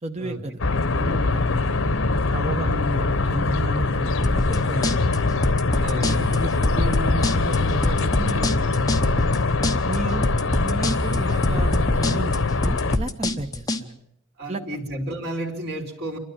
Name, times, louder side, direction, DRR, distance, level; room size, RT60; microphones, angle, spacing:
voice 1, 0.0-0.6 1.0-1.7 2.3-5.3 5.9-9.2 9.9-10.3 10.6-14.0 14.5-14.8, right 2 dB, 30° right, 3 dB, 1.0 m, -33 dB
sound 1, 0.6-13.0, left 3 dB, 75° left, 1.0 m, -23 dB
voice 2, 2.5-2.9 5.7-6.7 10.0-10.4 14.4-16.2, right 1 dB, 50° right, 1 dB, 3.8 m, -32 dB
sound 2, 4.2-13.8, left 1 dB, 20° left, 0.9 m, -25 dB
28.5 x 12.5 x 8.8 m, 0.78 s
head